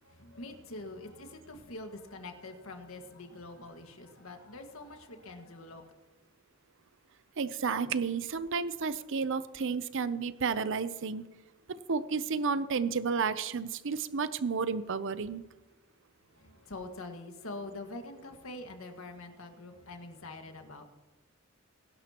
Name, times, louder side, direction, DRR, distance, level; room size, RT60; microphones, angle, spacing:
voice 1, 0.0-5.9 16.3-20.8, left 2 dB, 90° left, 4 dB, 1.8 m, -45 dB
voice 2, 7.4-11.2 11.9-15.4, right 5 dB, 65° right, 14 dB, 0.6 m, -31 dB
22.0 x 11.5 x 3.0 m, 1.1 s
head